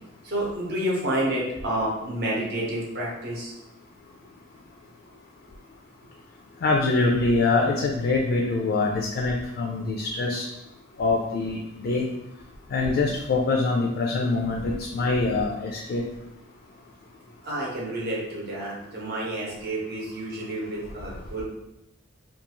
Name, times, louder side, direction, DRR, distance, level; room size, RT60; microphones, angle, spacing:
voice 1, 0.2-3.5 17.4-21.4, right 1 dB, 55° right, -4 dB, 0.8 m, -29 dB
voice 2, 6.6-10.5 11.0-12.1 12.7-16.0, left 3 dB, 50° left, 0 dB, 0.3 m, -24 dB
2.5 x 2.3 x 2.9 m, 0.89 s
head